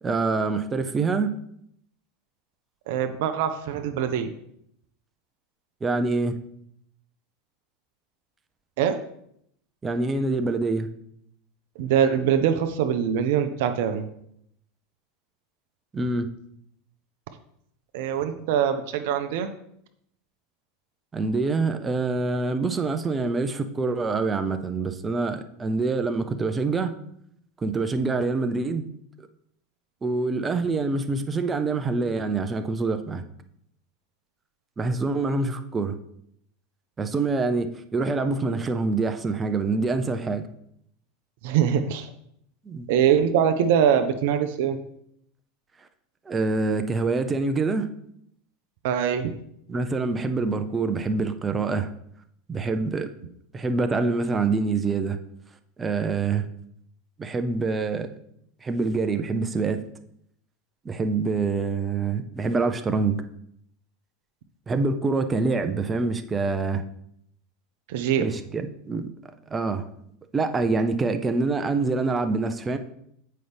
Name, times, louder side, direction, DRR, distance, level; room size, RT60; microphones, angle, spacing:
voice 1, 0.0-1.3 5.8-6.3 9.8-10.9 15.9-16.3 21.1-26.9 27.6-28.8 29.2-29.3 30.0-33.2 34.8-35.9 37.0-40.4 42.7-42.9 46.3-47.9 49.7-51.9 52.5-53.1 53.5-55.2 55.8-56.4 57.2-58.1 58.6-59.8 60.8-63.2 64.7-66.8 68.2-69.1 69.5-69.8 70.3-72.8, right 3 dB, 20° right, 8 dB, 0.7 m, -25 dB
voice 2, 2.9-4.3 8.8-9.0 11.8-14.1 17.9-19.5 41.4-42.1 42.9-44.8 48.8-49.3 67.9-68.2, right 8 dB, 60° right, 8 dB, 0.6 m, -23 dB
7.8 x 5.3 x 3.4 m, 0.73 s
figure-of-eight pair, 85°, 0 cm